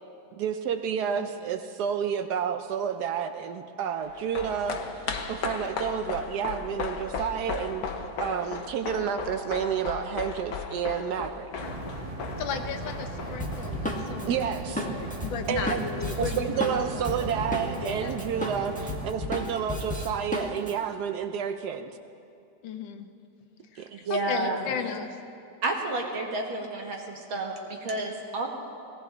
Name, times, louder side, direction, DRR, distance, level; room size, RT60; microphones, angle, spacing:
voice 1, 0.4-11.5 14.3-14.8 15.5-15.8 16.2-21.9 23.8-23.9, right 8 dB, 70° right, 8 dB, 1.0 m, -30 dB
sound 1, 4.0-14.6 14.9-15.0, left 5 dB, 60° left, 1.2 m, -36 dB
sound 2, 11.6-19.1, right 2 dB, 35° right, 0.6 m, -37 dB
voice 2, 12.4-17.4 17.8-18.2 22.6-23.1 23.7-25.2, left 6 dB, 75° left, 7 dB, 1.6 m, -36 dB
Drum kit, 13.4-17.9 18.2-20.7, left 1 dB, 5° left, 1.1 m, -33 dB
voice 3, 23.9-24.6 25.6-28.5, right 2 dB, 85° right, 1 dB, 2.4 m, -30 dB
18.5 x 17.0 x 3.9 m, 2.5 s
omnidirectional pair, 2.1 m